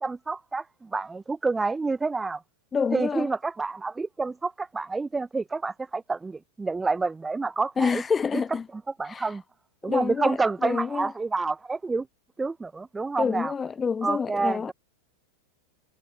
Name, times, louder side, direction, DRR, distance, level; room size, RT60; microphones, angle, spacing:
voice 1, 0.0-2.4 2.9-8.0 8.3-8.4 8.7-9.4 9.8-12.1 12.4-13.5 14.0-14.7, right 3 dB, 10° right, 0.9 m, -28 dB
voice 2, 2.7-3.3 7.8-8.6 9.0-9.3 9.9-11.1 13.2-14.7, left 5 dB, 15° left, 0.4 m, -27 dB
figure-of-eight pair, 90°, 0 cm